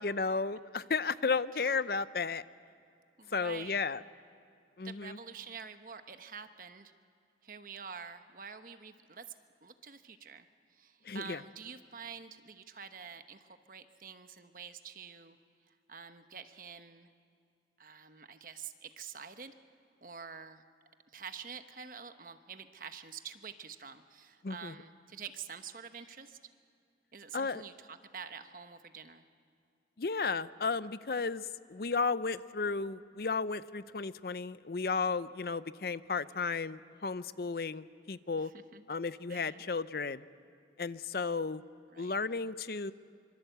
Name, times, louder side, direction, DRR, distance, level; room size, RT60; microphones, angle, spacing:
voice 1, 0.0-2.4 3.3-4.0 4.8-5.2 11.0-11.4 24.4-24.7 27.3-27.6 30.0-38.5 38.9-40.2 40.8-41.6 42.0-42.9, left 4 dB, 55° left, 15 dB, 0.6 m, -34 dB
voice 2, 3.2-3.8 4.8-6.9 7.4-9.2 9.6-15.4 15.7-17.1 17.8-19.5 20.0-20.6 21.1-26.4 27.1-29.2 38.4-38.9 39.3-39.6 41.9-42.1, right 6 dB, 50° right, 9 dB, 1.0 m, -47 dB
25.0 x 24.0 x 8.0 m, 2.3 s
head